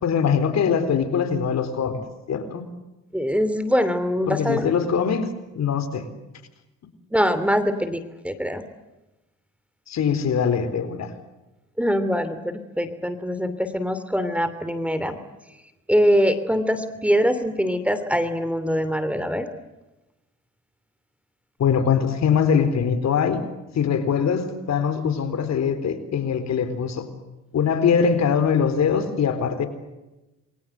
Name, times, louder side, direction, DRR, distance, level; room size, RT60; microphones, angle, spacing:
voice 1, 0.0-2.0 2.3-2.6 4.3-5.3 5.5-6.1 9.9-11.1 21.6-23.4 23.7-27.1 27.5-29.7, left 7 dB, 60° left, 10 dB, 4.1 m, -22 dB
voice 2, 3.1-4.7 7.1-8.6 11.8-15.2 15.9-19.5, equal, 5° right, 12 dB, 2.8 m, -23 dB
28.5 x 22.5 x 7.9 m, 1.0 s
cardioid pair, 90°, 30 cm